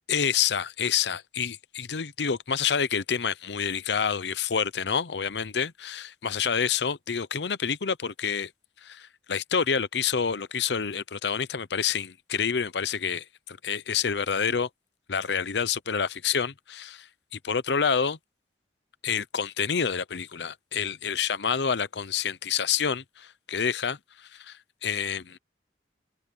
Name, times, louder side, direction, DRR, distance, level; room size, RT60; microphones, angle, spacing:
voice 1, 0.1-8.5 8.8-14.7 15.1-17.1 17.3-18.2 19.0-25.4, left 7 dB, 70° left, 0.7 m, -28 dB
head